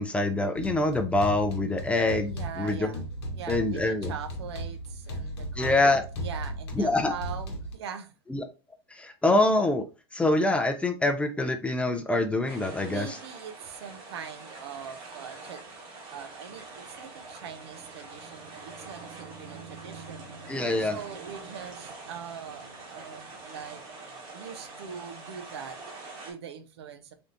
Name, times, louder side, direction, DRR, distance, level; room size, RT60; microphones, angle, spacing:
voice 1, 0.0-3.0 3.5-4.1 5.6-6.0 6.7-7.1 8.3-8.4 8.9-9.8 10.1-13.1 20.5-21.0, left 2 dB, 10° left, 0.4 m, -25 dB
sound 1, 0.5-7.7, right 1 dB, 80° left, 0.9 m, -36 dB
voice 2, 2.2-3.0 3.3-8.1 12.8-15.7 16.1-25.8 26.2-27.1, right 7 dB, 80° right, 0.6 m, -42 dB
sound 2, 12.5-26.3, right 3 dB, 60° right, 1.5 m, -45 dB
3.4 x 2.4 x 2.6 m
hypercardioid pair, 110°, 14 cm